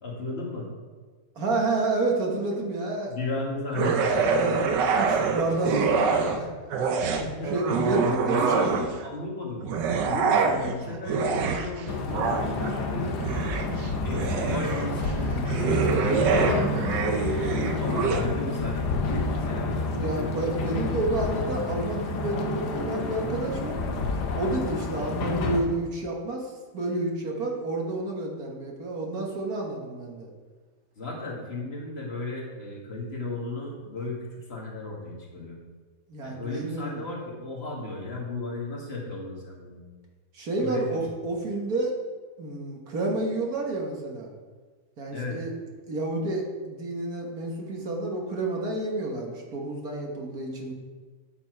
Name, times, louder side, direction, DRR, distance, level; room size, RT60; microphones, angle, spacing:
voice 1, 0.0-0.7 3.1-4.2 7.2-7.5 8.0-9.6 10.1-13.2 14.0-17.2 17.7-20.7 31.0-35.6 36.2-39.8 40.6-41.0 45.1-45.4, left 2 dB, 35° left, -2 dB, 2.1 m, -34 dB
voice 2, 1.4-3.1 4.3-4.7 4.9-6.5 7.5-8.7 17.4-17.8 19.9-23.8 24.3-30.3 36.1-37.0 40.3-41.9 42.4-44.3 45.0-45.5 45.9-50.7, right 2 dB, 60° right, 0 dB, 1.8 m, -30 dB
sound 1, 3.7-6.4 6.7-9.1 9.6-18.2, right 5 dB, 85° right, 1.5 m, -26 dB
sound 2, 11.9-25.6, left 3 dB, 70° left, 1.5 m, -29 dB
9.6 x 7.0 x 4.6 m, 1.4 s
omnidirectional pair, 1.8 m